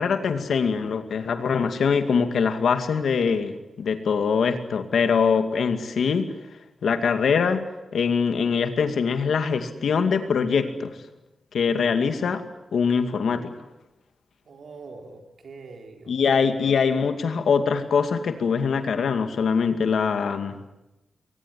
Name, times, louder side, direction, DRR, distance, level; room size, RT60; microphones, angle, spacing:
voice 1, 0.0-6.3 6.8-7.6 7.9-10.9 11.5-12.4 12.7-13.5 16.1-20.6, left 6 dB, 80° left, 8 dB, 2.3 m, -23 dB
voice 2, 14.5-16.6, right 4 dB, 65° right, 4 dB, 4.1 m, -44 dB
22.5 x 19.5 x 9.9 m, 1.0 s
wide cardioid pair, 120°, 0 cm